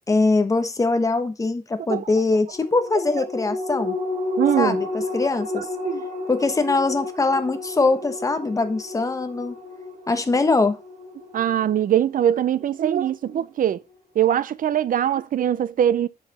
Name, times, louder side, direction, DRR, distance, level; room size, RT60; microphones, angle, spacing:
voice 1, 0.1-4.0 4.6-5.7 6.3-9.6 10.1-10.8, left 3 dB, 20° left, 1.1 m, -22 dB
sound 1, 2.5-13.3 13.7-13.8, left 2 dB, 75° right, 4.2 m, -32 dB
voice 2, 4.4-4.8 5.6-6.0 11.3-13.8 14.2-16.1, right 10 dB, 55° right, 0.5 m, -22 dB
9.8 x 5.8 x 4.2 m
wide cardioid pair, 170°, 16 cm